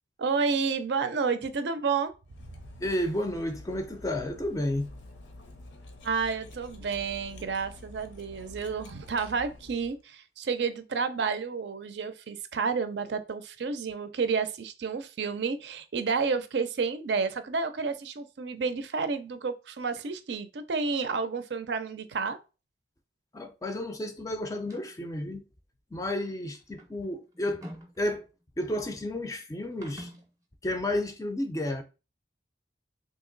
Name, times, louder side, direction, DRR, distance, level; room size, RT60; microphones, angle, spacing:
voice 1, 0.2-2.1 2.5-2.6 6.0-22.4, right 5 dB, 70° right, 0.5 m, -30 dB
Cutlery silverware, 2.3-10.0, left 2 dB, 80° left, 0.6 m, -48 dB
voice 2, 2.8-4.9 23.3-25.5 25.9-27.6 28.0-28.3 28.6-30.1 30.6-31.8, left 1 dB, 20° left, 0.4 m, -31 dB
sound 1, 24.5-25.1 26.1-28.5 29.6-30.3, equal, 20° right, 0.6 m, -47 dB
2.8 x 2.8 x 3.8 m
head